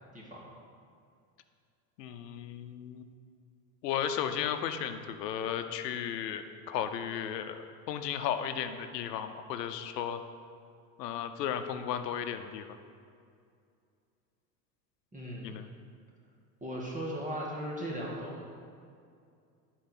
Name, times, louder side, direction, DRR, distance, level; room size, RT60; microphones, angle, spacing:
voice 1, 0.1-0.5 15.1-15.7 16.6-18.7, equal, 15° right, -3 dB, 1.7 m, -38 dB
voice 2, 2.0-3.0 3.8-7.6 7.9-10.2 11.0-12.8 15.4-15.7, left 9 dB, 85° left, 9 dB, 0.8 m, -34 dB
10.5 x 4.6 x 5.9 m, 2.3 s
hypercardioid pair, 105°, 48 cm